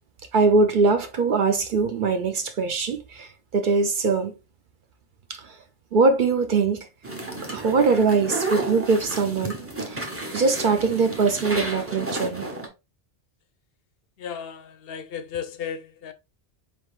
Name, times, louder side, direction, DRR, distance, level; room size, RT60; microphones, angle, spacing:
voice 1, 0.3-4.3 5.3-5.5 5.9-6.9 7.5-9.6 9.9-10.0 10.3-12.5, right 4 dB, 55° right, 0.6 m, -22 dB
sound 1, 7.0-12.7, right 2 dB, 15° right, 0.6 m, -32 dB
voice 2, 14.2-16.1, left 8 dB, 65° left, 0.7 m, -34 dB
4.3 x 3.5 x 2.3 m
omnidirectional pair, 1.1 m